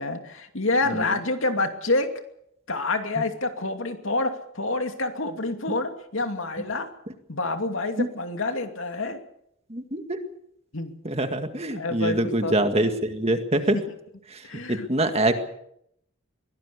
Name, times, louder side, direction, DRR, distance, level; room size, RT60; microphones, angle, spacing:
voice 1, 0.0-2.1 2.7-6.9 7.3-9.2 10.7-11.0 11.7-12.6 13.7-13.8 14.5-14.9, left 2 dB, 70° left, 6 dB, 2.6 m, -27 dB
voice 2, 9.7-10.2 11.0-13.8 14.3-14.4 14.7-15.4, right 1 dB, 30° right, 7 dB, 1.9 m, -24 dB
23.5 x 18.0 x 6.9 m, 0.74 s
head